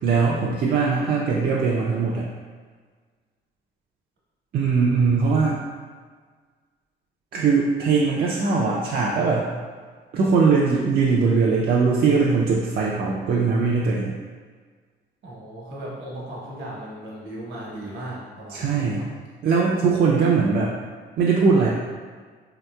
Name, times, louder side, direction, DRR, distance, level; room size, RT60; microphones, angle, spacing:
voice 1, 0.0-2.2 4.5-5.6 7.3-9.5 10.1-14.1 18.5-19.0 19.4-20.7 21.2-21.7, right 4 dB, 55° right, -4 dB, 0.4 m, -20 dB
voice 2, 15.2-19.0, right 1 dB, 75° right, -4 dB, 1.0 m, -36 dB
3.3 x 2.8 x 2.2 m, 1.6 s
cardioid pair, 90°, 20 cm